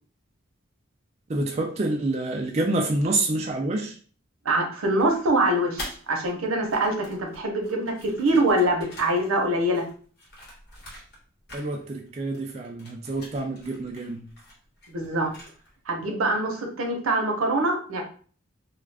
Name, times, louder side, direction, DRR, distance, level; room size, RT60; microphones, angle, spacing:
voice 1, 1.3-4.0 11.5-14.2, right 2 dB, 30° right, 1 dB, 0.3 m, -27 dB
voice 2, 4.4-9.8 14.9-15.3 15.9-18.0, right 1 dB, 90° right, 2 dB, 0.7 m, -24 dB
sound 1, 5.0-6.3 6.6-11.2 11.5-12.1 12.3-15.8, left 1 dB, 50° left, 1.2 m, -45 dB
2.3 x 2.3 x 3.3 m, 0.42 s
head